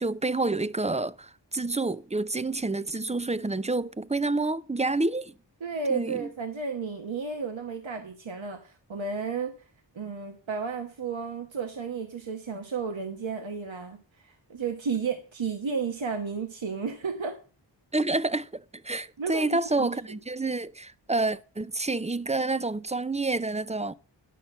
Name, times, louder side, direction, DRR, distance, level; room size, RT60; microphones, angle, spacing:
voice 1, 0.0-5.3 5.9-6.3 17.9-23.9, right 2 dB, 15° right, 0.5 m, -28 dB
voice 2, 5.6-9.5 9.9-14.0 14.2-17.3 19.2-19.9, right 5 dB, 85° right, 1.3 m, -32 dB
11.0 x 5.9 x 6.7 m
wide cardioid pair, 60°, 45 cm